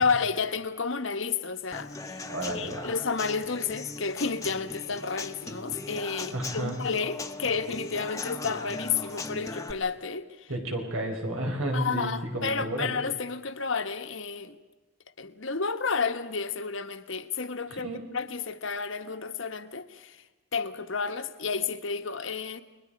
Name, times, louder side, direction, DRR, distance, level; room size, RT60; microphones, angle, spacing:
voice 1, 0.0-10.5 11.7-14.6 15.2-20.2 20.5-22.6, left 5 dB, 65° left, 1.3 m, -31 dB
Human voice / Acoustic guitar / Drum, 1.7-9.7, left 2 dB, 15° left, 1.1 m, -39 dB
voice 2, 2.3-2.9 6.3-6.8 10.5-13.0 17.7-18.0, right 1 dB, 90° right, 5.5 m, -32 dB
30.0 x 22.0 x 5.2 m
head